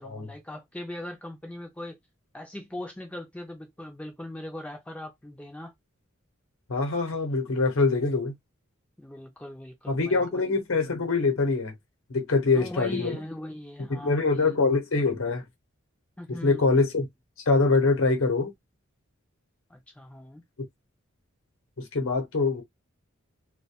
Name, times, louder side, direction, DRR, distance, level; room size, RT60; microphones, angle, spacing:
voice 1, 0.0-2.0 2.3-5.7 9.0-10.5 12.5-14.5 16.2-16.8 19.7-20.4, left 1 dB, 5° left, 0.3 m, -40 dB
voice 2, 6.7-8.3 9.9-11.7 12.1-13.2 13.9-15.4 16.3-17.1 17.5-18.5 21.8-22.6, left 3 dB, 80° left, 0.8 m, -24 dB
2.2 x 2.2 x 2.7 m
head